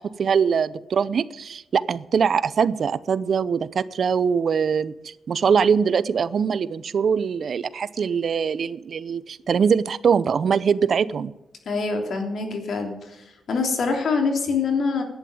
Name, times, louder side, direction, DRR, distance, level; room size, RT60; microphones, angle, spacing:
voice 1, 0.0-11.3, right 6 dB, 60° right, 17 dB, 0.6 m, -22 dB
voice 2, 11.7-12.9 13.5-15.0, left 4 dB, 70° left, 3 dB, 3.1 m, -24 dB
11.5 x 9.3 x 8.6 m, 0.98 s
cardioid pair, 90°, 0 cm